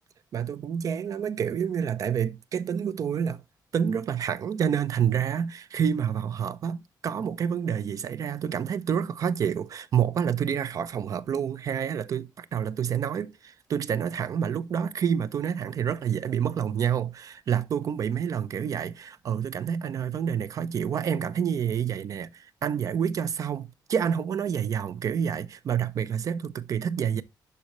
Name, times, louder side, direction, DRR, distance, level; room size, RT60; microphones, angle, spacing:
voice 1, 0.3-3.4 3.7-27.2, right 8 dB, 50° right, 0.5 m, -28 dB
11.5 x 4.1 x 3.0 m
wide cardioid pair, 175°, 8 cm